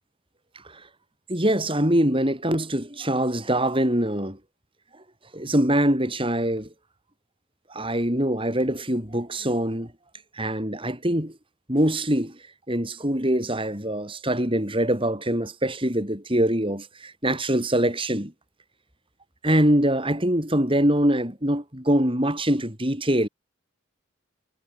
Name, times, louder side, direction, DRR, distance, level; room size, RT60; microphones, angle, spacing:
voice 1, 1.3-4.4 5.3-6.7 7.7-9.9 10.4-11.4 11.7-12.4 12.7-18.3 19.4-23.3, right 1 dB, 25° right, 7.3 m, -23 dB
head